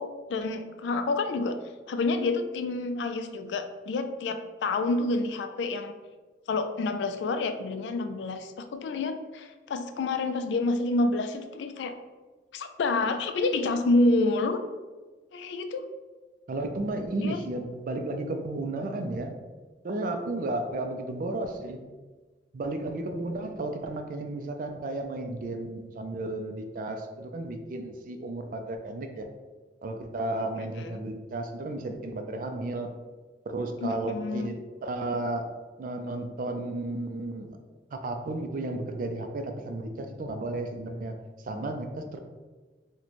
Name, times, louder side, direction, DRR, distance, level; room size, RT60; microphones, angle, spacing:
voice 1, 0.0-1.6 1.9-6.0 6.5-11.9 12.5-14.6 15.3-15.8 17.2-17.4 30.8-31.0 33.8-34.5, left 2 dB, 80° left, 8 dB, 0.3 m, -28 dB
voice 2, 16.5-19.4 19.8-21.8 22.5-29.3 29.8-32.9 33.5-35.5 35.8-37.6 37.9-41.1 41.4-42.2, right 2 dB, 50° right, 6 dB, 0.3 m, -33 dB
4.0 x 2.2 x 3.0 m, 1.3 s
head